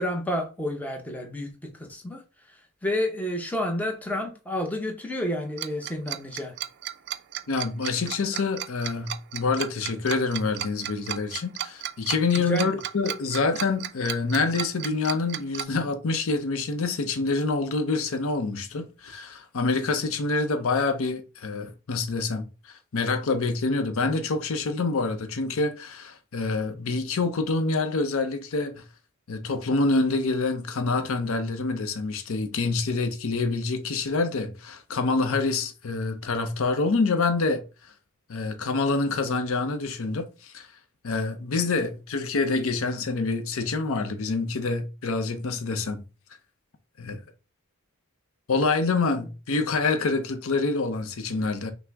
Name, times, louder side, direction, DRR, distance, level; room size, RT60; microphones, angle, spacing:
voice 1, 0.0-2.2 2.8-6.6 12.5-12.8, left 1 dB, 5° left, 0.7 m, -30 dB
Tick-tock, 5.6-15.6, right 11 dB, 50° right, 0.3 m, -33 dB
voice 2, 7.5-28.8 29.3-37.9 38.3-40.7 41.0-46.0 47.0-47.2 48.5-51.7, left 3 dB, 65° left, 0.6 m, -26 dB
5.8 x 2.0 x 3.4 m
head